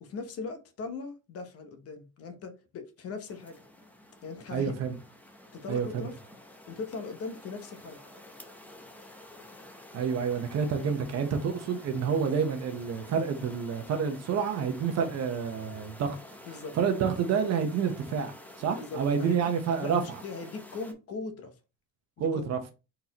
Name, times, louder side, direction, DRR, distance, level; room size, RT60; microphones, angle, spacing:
voice 1, 0.0-3.6 4.2-4.8 5.5-6.2 6.7-8.0 16.4-16.8 18.8-19.5 19.8-21.5 22.2-22.4, left 4 dB, 45° left, 0.9 m, -39 dB
sound 1, 3.3-20.9, left 1 dB, 5° left, 0.6 m, -50 dB
voice 2, 4.5-5.0 5.7-6.1 9.9-16.2 16.7-18.3 18.6-20.0 22.2-22.6, right 6 dB, 50° right, 0.9 m, -28 dB
4.5 x 4.1 x 2.9 m
cardioid pair, 175°, 34 cm